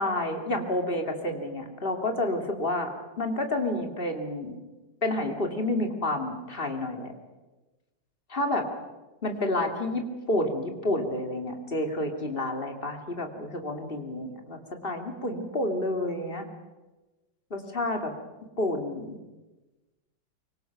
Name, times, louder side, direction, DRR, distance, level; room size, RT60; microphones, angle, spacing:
voice 1, 0.0-2.9 3.2-4.6 5.0-7.1 8.3-8.6 9.2-10.0 10.3-16.4 17.5-18.1 18.6-19.2, left 1 dB, 30° left, 4 dB, 2.7 m, -29 dB
24.5 x 24.0 x 5.9 m, 1.1 s
omnidirectional pair, 2.0 m